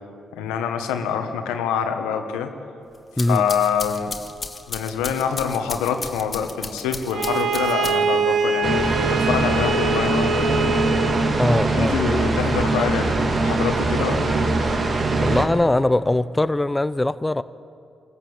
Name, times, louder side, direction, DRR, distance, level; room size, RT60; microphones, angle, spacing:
voice 1, 0.3-2.5 3.3-4.1 4.7-10.8 11.7-14.4, left 7 dB, 90° left, 6 dB, 1.4 m, -26 dB
sound 1, 2.9-8.3, left 3 dB, 35° left, 1.8 m, -35 dB
Bowed string instrument, 7.1-11.3, right 3 dB, 70° right, 1.7 m, -24 dB
sound 2, 8.6-15.4, right 2 dB, 55° right, 2.4 m, -22 dB
voice 2, 11.4-12.0 15.2-17.4, left 1 dB, 15° left, 14 dB, 0.7 m, -21 dB
25.5 x 14.0 x 8.8 m, 2.5 s
supercardioid pair, 50°, 0 cm